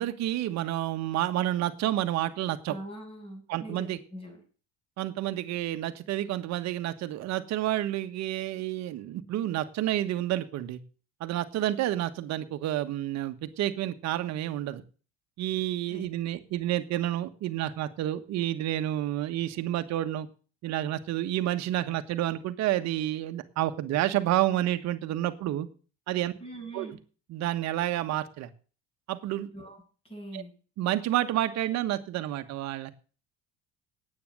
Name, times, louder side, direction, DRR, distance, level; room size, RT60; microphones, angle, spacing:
voice 1, 0.0-2.7 3.5-4.0 5.0-10.8 11.2-14.8 15.4-20.3 20.6-25.7 26.1-26.3 26.7-27.0 27.3-28.5 29.1-29.5 30.3-30.4 30.8-32.9, right 13 dB, 60° right, 10 dB, 1.4 m, -29 dB
voice 2, 2.7-4.4 15.9-16.0 26.4-27.0 29.5-29.8 30.0-30.5, right 1 dB, 20° left, 2 dB, 7.4 m, -42 dB
9.7 x 8.7 x 7.6 m, 0.39 s
supercardioid pair, 110°, 31 cm